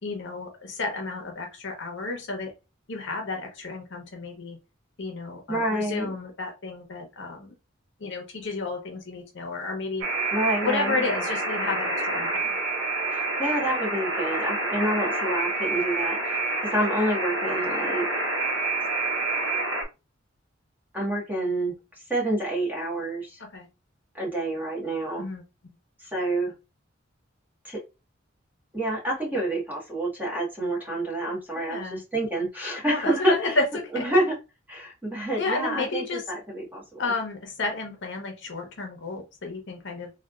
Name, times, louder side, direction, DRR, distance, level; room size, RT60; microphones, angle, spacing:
voice 1, 0.0-2.5 2.9-4.6 5.0-7.5 8.0-10.0 10.6-12.5 23.5-23.7 25.2-25.4 31.5-32.0 32.8-34.0 35.3-36.2 37.0-40.1, left 3 dB, 65° left, 3 dB, 0.8 m, -32 dB
voice 2, 5.5-6.1 10.3-11.0 13.1-18.1 20.9-21.7 22.1-23.4 24.1-25.2 26.0-26.5 27.6-27.8 28.7-33.6 33.9-34.4 34.7-37.0, right 1 dB, 10° right, -4 dB, 1.4 m, -28 dB
Alarm, 10.0-19.8, right 2 dB, 70° right, 0.8 m, -28 dB
3.4 x 2.4 x 2.4 m, 0.27 s
head